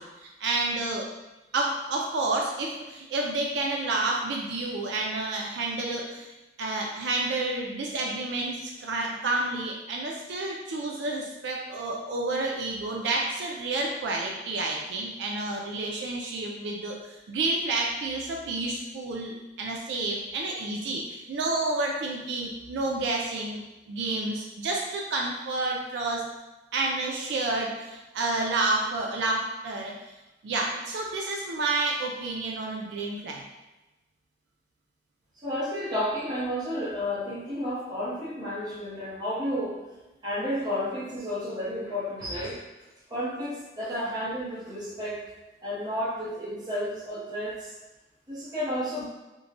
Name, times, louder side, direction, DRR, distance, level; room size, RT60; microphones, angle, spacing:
voice 1, 0.2-1.1 1.5-6.3 6.6-23.6 23.9-26.2 26.7-29.9 30.4-33.4, right 2 dB, 75° right, -1 dB, 0.3 m, -30 dB
voice 2, 35.4-39.8 40.2-42.6 43.1-45.2 45.6-47.7 48.3-49.1, equal, 20° right, -8 dB, 0.8 m, -31 dB
3.0 x 2.1 x 2.5 m, 1.0 s
head